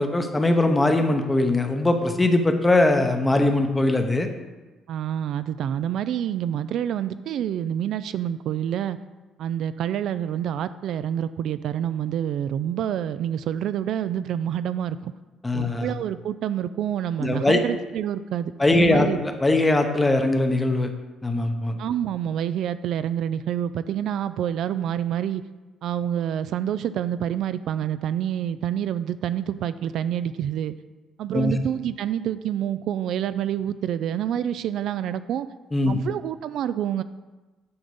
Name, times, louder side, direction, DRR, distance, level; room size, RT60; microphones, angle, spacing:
voice 1, 0.0-4.3 15.4-15.9 17.2-17.6 18.6-20.9 21.2-21.8 31.3-31.5 35.7-36.0, left 2 dB, 10° left, 6 dB, 0.8 m, -21 dB
voice 2, 4.9-9.0 9.4-15.1 15.5-19.2 21.8-25.4 25.8-30.7 31.2-35.5 35.9-37.0, right 10 dB, 65° right, 13 dB, 0.3 m, -27 dB
9.5 x 4.0 x 6.8 m, 1.2 s
cardioid pair, 145°, 0 cm